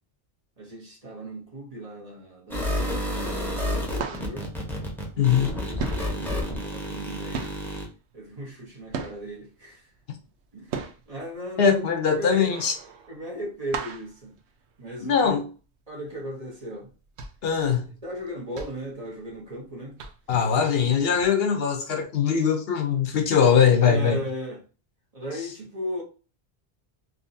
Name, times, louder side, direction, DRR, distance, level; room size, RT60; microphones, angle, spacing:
voice 1, 0.6-3.2 3.5-4.5 5.1-7.4 8.1-9.8 10.5-10.7 11.1-12.6 13.1-14.3 14.8-15.3 15.9-16.9 17.7-17.8 18.0-19.9 23.8-24.6 25.1-26.0, equal, 35° right, 1.2 m, -37 dB
sound 1, 2.5-7.9, left 1 dB, ahead, 0.8 m, -30 dB
sound 2, 3.9-5.5 5.8-9.5 10.0-15.2 15.6-15.7 16.1-16.3 16.8-19.6 20.0-20.5 21.2-21.3, right 6 dB, 90° right, 0.9 m, -37 dB
voice 2, 5.2-5.5 11.6-12.7 15.0-15.4 17.4-17.9 20.3-24.2, left 7 dB, 70° left, 0.9 m, -21 dB
3.7 x 2.8 x 2.6 m
omnidirectional pair, 1.1 m